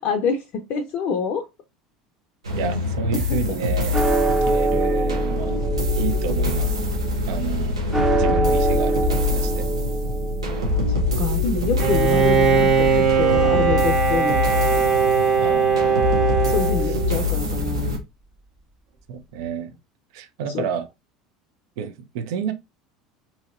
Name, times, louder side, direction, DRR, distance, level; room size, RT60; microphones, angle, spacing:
voice 1, 0.0-1.5 3.1-3.6 10.9-14.6 16.5-18.0 20.5-20.6, left 5 dB, 50° left, 0.5 m, -27 dB
sound 1, 2.4-18.0, left 3 dB, 80° right, 1.0 m, -25 dB
voice 2, 2.6-4.0 4.3-5.6 6.0-6.8 7.3-7.9 8.2-9.7 15.4-15.9 16.9-17.0 19.1-19.8 20.1-20.9 21.8-22.5, right 7 dB, 60° right, 0.5 m, -30 dB
sound 2, 3.9-14.4, right 2 dB, 10° right, 0.6 m, -25 dB
Bowed string instrument, 11.8-17.4, right 6 dB, 40° right, 1.3 m, -20 dB
2.8 x 2.8 x 2.5 m
figure-of-eight pair, 70°, 3 cm